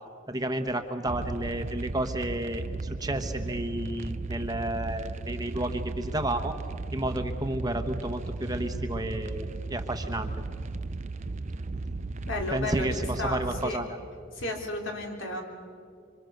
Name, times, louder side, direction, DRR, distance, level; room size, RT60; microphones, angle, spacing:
voice 1, 0.3-6.6 6.9-10.3 12.5-13.9, right 1 dB, 20° right, 7 dB, 1.1 m, -31 dB
sound 1, 1.1-13.7, right 3 dB, 35° right, 0.5 m, -35 dB
voice 2, 12.2-13.8 14.3-15.4, left 2 dB, 70° left, 2 dB, 3.7 m, -33 dB
26.0 x 25.0 x 6.6 m, 2.4 s
head